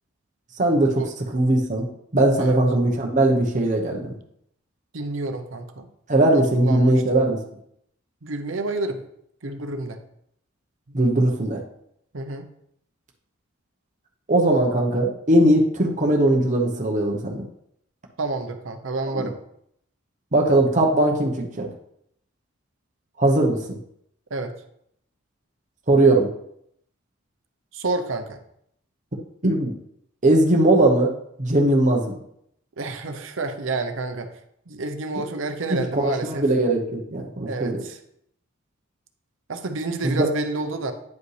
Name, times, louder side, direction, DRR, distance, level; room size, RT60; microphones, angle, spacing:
voice 1, 0.6-1.0 1.3-1.9 2.1-4.1 6.1-7.4 10.9-11.6 14.3-17.4 19.1-19.3 20.3-21.7 23.2-23.6 25.9-26.3 29.4-29.7 30.2-31.1 31.4-32.1 35.7-37.8 40.0-40.3, right 1 dB, 35° right, 0 dB, 0.9 m, -19 dB
voice 2, 4.9-5.9 6.3-7.2 8.2-9.0 9.4-10.0 10.9-11.0 12.1-12.5 18.2-19.4 24.3-24.5 27.7-28.4 32.8-34.3 34.7-36.5 37.5-38.0 39.5-40.9, right 3 dB, 65° right, 7 dB, 0.8 m, -29 dB
9.4 x 5.1 x 3.3 m, 0.73 s
head